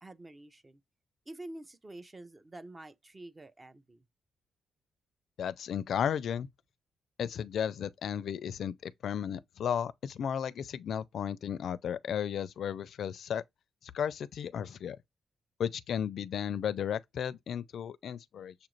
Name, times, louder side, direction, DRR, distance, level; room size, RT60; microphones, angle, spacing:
voice 1, 0.0-0.8 1.3-4.0, right 1 dB, 20° right, 0.5 m, -48 dB
voice 2, 5.4-6.5 7.2-13.4 13.9-15.0 15.6-18.5, left 8 dB, 70° left, 0.4 m, -34 dB
6.8 x 2.5 x 3.0 m
cardioid pair, 125°, 0 cm